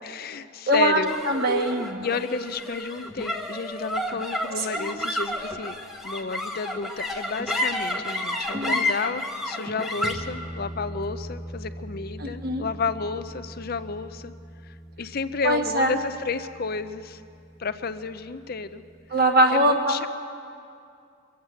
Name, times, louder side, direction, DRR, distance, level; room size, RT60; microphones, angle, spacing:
voice 1, 0.0-1.1 2.0-5.8 6.0-14.3 14.6-17.2 17.6-18.8 19.5-20.1, left 4 dB, 45° left, 11 dB, 0.5 m, -31 dB
voice 2, 0.7-2.1 4.6-5.0 8.5-8.8 12.2-12.7 15.4-16.0 19.1-20.1, right 1 dB, 45° right, 3 dB, 1.3 m, -23 dB
sound 1, 1.0-17.6, left 1 dB, ahead, 0.9 m, -32 dB
24.0 x 8.0 x 7.6 m, 2.4 s
head